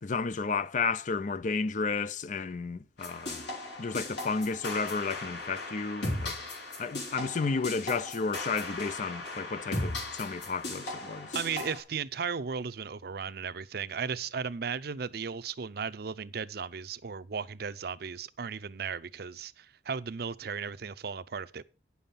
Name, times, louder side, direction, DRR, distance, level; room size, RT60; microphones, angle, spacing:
voice 1, 0.0-3.4 3.8-6.4 6.8-11.4, left 4 dB, 45° left, 0.5 m, -32 dB
sound 1, 3.0-11.8, left 2 dB, 80° left, 4.1 m, -37 dB
voice 2, 11.3-21.6, right 6 dB, 60° right, 0.6 m, -36 dB
10.0 x 7.1 x 5.6 m
head